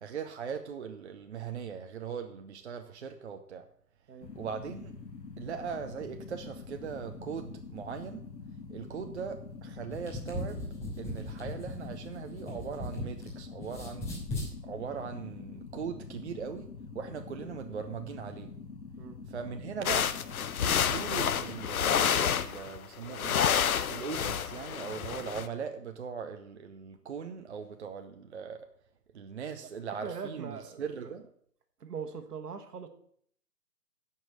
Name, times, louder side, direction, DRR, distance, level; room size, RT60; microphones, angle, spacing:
voice 1, 0.0-3.7 4.3-4.9 5.4-8.3 8.7-10.7 11.0-14.1 14.6-18.5 19.3-20.2 20.6-23.4 23.9-28.7 29.1-31.3, right 6 dB, 45° right, 0.6 m, -40 dB
sound 1, 4.2-21.7, left 4 dB, 90° left, 1.8 m, -45 dB
sound 2, 9.9-13.3 13.6-14.5, left 1 dB, 10° left, 3.2 m, -38 dB
sound 3, 19.9-22.8 23.1-25.5, left 8 dB, 60° left, 0.7 m, -29 dB
voice 2, 30.0-31.1 31.8-32.9, right 6 dB, 65° right, 1.4 m, -41 dB
10.0 x 5.4 x 6.5 m
hypercardioid pair, 145°, 49 cm